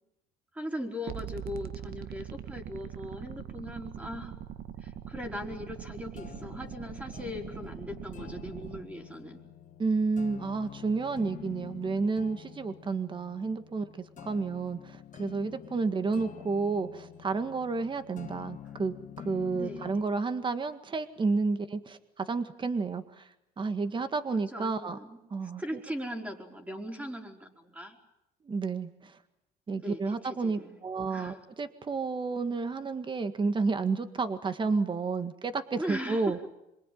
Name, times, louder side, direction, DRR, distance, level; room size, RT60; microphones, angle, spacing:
voice 1, 0.5-4.4 4.8-9.4 19.5-20.0 24.5-25.2 25.6-28.0 29.8-30.8 31.1-31.4 35.8-36.5, equal, 10° right, 3 dB, 4.6 m, -39 dB
sound 1, 1.1-8.8, right 10 dB, 65° right, 1.3 m, -42 dB
sound 2, 5.7-20.0, left 9 dB, 50° left, 1.7 m, -47 dB
voice 2, 9.8-23.3 23.6-25.0 25.3-25.6 28.4-29.2 29.7-36.4, right 4 dB, 30° right, 10 dB, 1.8 m, -31 dB
26.5 x 23.5 x 9.4 m, 0.85 s
cardioid pair, 110°, 17 cm